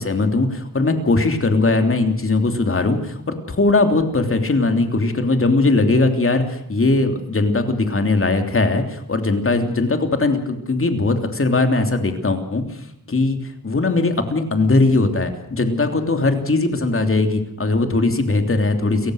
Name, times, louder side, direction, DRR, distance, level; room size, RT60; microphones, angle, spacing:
voice 1, 0.0-12.6 13.1-13.4 13.6-19.1, left 3 dB, 35° left, 6 dB, 3.2 m, -19 dB
29.5 x 15.5 x 6.5 m, 0.76 s
wide cardioid pair, 125°, 38 cm